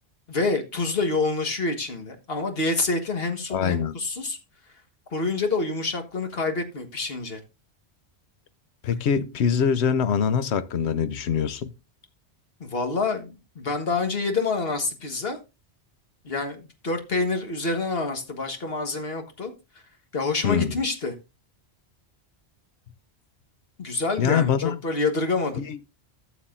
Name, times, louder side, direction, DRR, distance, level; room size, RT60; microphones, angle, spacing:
voice 1, 0.3-4.4 5.1-7.4 12.6-15.4 16.2-19.5 20.1-21.1 23.8-25.7, left 3 dB, 60° left, 1.7 m, -27 dB
voice 2, 3.5-3.9 8.8-11.7 20.4-20.7 24.2-24.8 25.7-25.8, left 7 dB, 80° left, 1.0 m, -23 dB
14.0 x 7.3 x 2.5 m
omnidirectional pair, 1.1 m